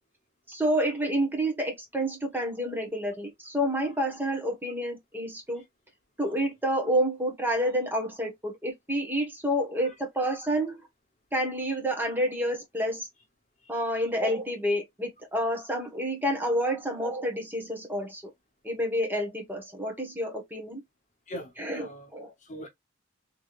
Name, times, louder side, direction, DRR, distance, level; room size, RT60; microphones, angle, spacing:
voice 1, 0.5-5.6 6.2-10.8 11.3-13.1 13.7-18.2 18.6-20.8 21.6-22.3, equal, 10° right, 1.2 m, -29 dB
voice 2, 21.3-22.1 22.4-22.7, equal, 35° left, 0.9 m, -41 dB
3.5 x 3.1 x 2.4 m
head